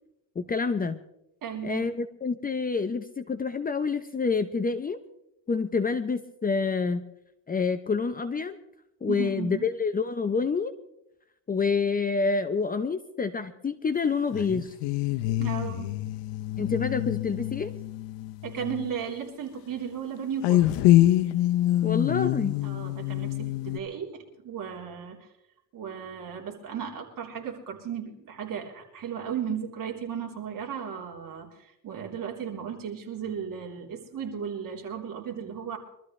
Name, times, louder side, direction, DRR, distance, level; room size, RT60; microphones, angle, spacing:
voice 1, 0.4-1.0 1.6-5.0 5.5-7.1 7.5-8.6 9.0-10.7 11.5-14.7 16.6-17.7 21.8-22.6, left 4 dB, 20° left, 10 dB, 0.7 m, -27 dB
voice 2, 1.4-1.9 9.1-9.7 15.4-15.9 18.4-20.8 22.6-25.3 25.7-35.8, right 7 dB, 50° right, 0 dB, 3.7 m, -35 dB
sound 1, 14.3-18.9 20.4-23.8, left 14 dB, 90° left, 0.8 m, -25 dB
24.0 x 13.5 x 3.3 m, 0.81 s
cardioid pair, 115°, 41 cm